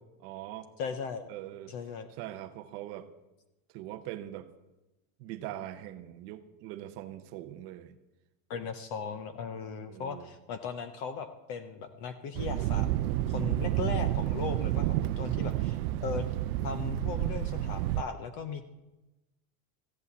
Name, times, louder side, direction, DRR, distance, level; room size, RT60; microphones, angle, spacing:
voice 1, 0.2-0.7 1.3-1.8 2.1-3.1 3.7-4.5 5.2-8.0 9.9-10.3 14.9-15.3, right 13 dB, 35° right, 11 dB, 0.6 m, -42 dB
voice 2, 0.8-1.2 1.7-2.1 8.5-12.9 13.3-16.3 16.6-18.6, left 6 dB, 30° left, 10 dB, 0.4 m, -37 dB
Thunder, 12.3-18.0, right 15 dB, 75° right, 0.6 m, -30 dB
14.0 x 8.0 x 8.2 m, 1.0 s
supercardioid pair, 180°, 43 cm